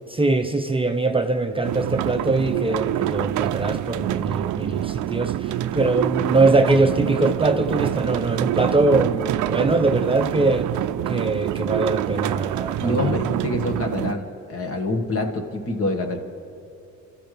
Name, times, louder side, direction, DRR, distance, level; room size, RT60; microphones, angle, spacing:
voice 1, 0.1-10.7 11.0-13.1, right 2 dB, 20° right, 5 dB, 0.6 m, -22 dB
Water mill - gears and belts, 1.6-14.1, right 13 dB, 75° right, 0.5 m, -26 dB
voice 2, 12.8-16.2, left 2 dB, 50° left, 4 dB, 1.8 m, -26 dB
28.0 x 14.0 x 3.4 m, 2.7 s
cardioid pair, 90°, 30 cm